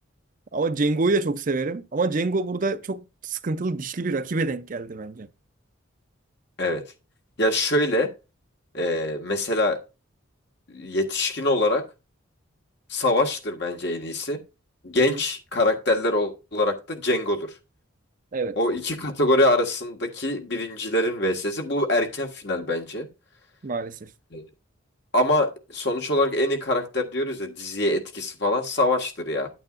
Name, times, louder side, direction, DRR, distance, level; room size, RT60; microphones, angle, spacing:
voice 1, 0.5-5.3 15.0-15.2 18.3-18.6 23.6-24.1, right 3 dB, 40° right, 0.5 m, -26 dB
voice 2, 7.4-8.1 8.7-9.8 10.7-11.8 12.9-14.4 14.8-17.5 18.6-23.1 24.3-24.4 25.1-29.5, left 1 dB, 55° left, 1.6 m, -24 dB
9.1 x 8.8 x 2.5 m
head